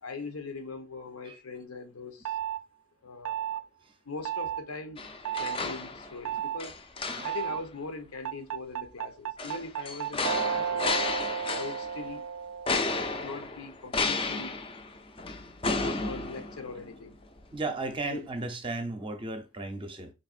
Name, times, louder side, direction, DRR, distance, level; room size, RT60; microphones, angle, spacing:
voice 1, 0.0-2.4 3.0-3.6 4.0-5.0 5.4-6.8 7.2-10.9 11.5-12.2 13.2-14.6 15.7-17.2 18.1-18.2, left 4 dB, 85° left, 0.8 m, -41 dB
sound 1, 2.3-2.6 3.3-3.6 4.3-4.6 5.3-5.6 6.3-6.6 7.3-7.6 8.3-13.3, right 9 dB, 80° right, 0.3 m, -33 dB
sound 2, 5.0-6.3 6.6-7.6 9.4-12.1 12.7-17.0 17.4-17.5, left 3 dB, 25° left, 0.4 m, -33 dB
voice 2, 17.5-20.1, right 2 dB, 25° right, 0.6 m, -35 dB
4.0 x 3.4 x 2.4 m
head